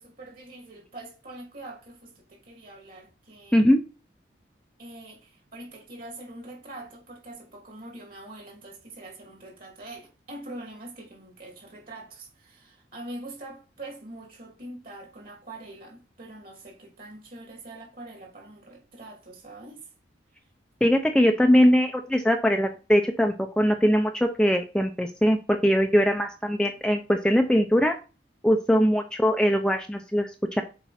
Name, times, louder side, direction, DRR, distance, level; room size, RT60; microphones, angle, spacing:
voice 1, 0.0-3.7 4.8-19.9 28.7-28.9, right 2 dB, 50° right, 2.9 m, -44 dB
voice 2, 20.8-28.0 28.4-30.6, equal, 5° left, 0.5 m, -21 dB
7.1 x 4.6 x 4.2 m
head